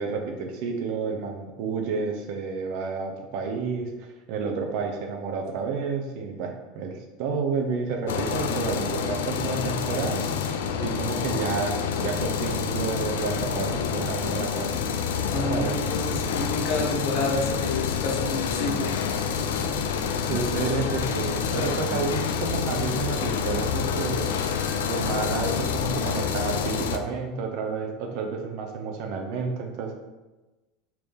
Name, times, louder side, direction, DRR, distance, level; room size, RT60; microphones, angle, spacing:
voice 1, 0.0-10.5 10.8-14.7 15.3-15.7 20.3-24.3 24.9-29.9, right 5 dB, 60° right, 2 dB, 0.6 m, -30 dB
sound 1, 8.1-27.0, left 6 dB, 70° left, 0.3 m, -28 dB
voice 2, 15.3-18.9, left 2 dB, 55° left, 0 dB, 0.9 m, -29 dB
sound 2, 19.6-20.4 21.0-22.0 22.6-23.6, equal, 20° right, 0.9 m, -40 dB
3.8 x 2.9 x 3.4 m, 1.1 s
figure-of-eight pair, 75°, 0 cm